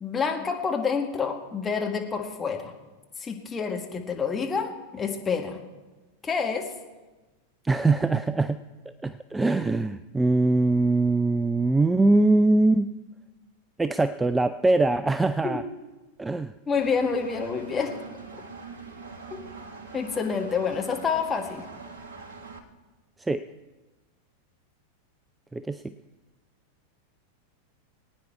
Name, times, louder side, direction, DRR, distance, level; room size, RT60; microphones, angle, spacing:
voice 1, 0.0-2.7 3.2-5.6 6.2-6.7 15.4-15.6 16.7-17.9 19.9-21.6, left 5 dB, 15° left, 2 dB, 1.7 m, -28 dB
voice 2, 7.6-8.6 9.0-12.9 13.8-15.6 16.2-16.5 23.3-23.4 25.5-25.8, right 2 dB, 10° right, 13 dB, 0.4 m, -22 dB
Engine, 16.7-22.6, right 4 dB, 60° right, 1.5 m, -43 dB
20.5 x 9.5 x 4.6 m, 1.2 s
figure-of-eight pair, 90°, 0 cm